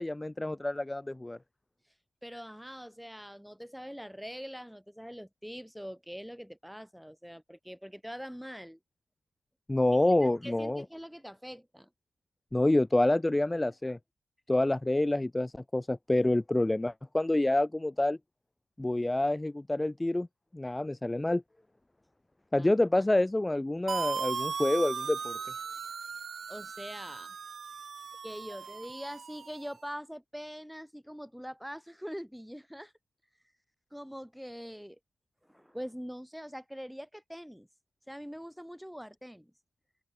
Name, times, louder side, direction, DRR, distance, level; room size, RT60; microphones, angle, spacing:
voice 1, 0.0-1.4 9.7-10.8 12.5-14.0 14.5-18.2 18.8-20.3 20.5-21.4 22.5-25.4, left 1 dB, 15° left, 1.3 m, -27 dB
voice 2, 2.2-8.8 10.1-10.2 10.4-11.9 22.6-22.7 26.5-27.4 28.2-32.9 33.9-35.0 35.5-37.7 38.1-39.5, equal, ahead, 5.3 m, -43 dB
sound 1, 23.9-29.7, right 6 dB, 55° right, 4.0 m, -37 dB
cardioid pair, 80°, 0 cm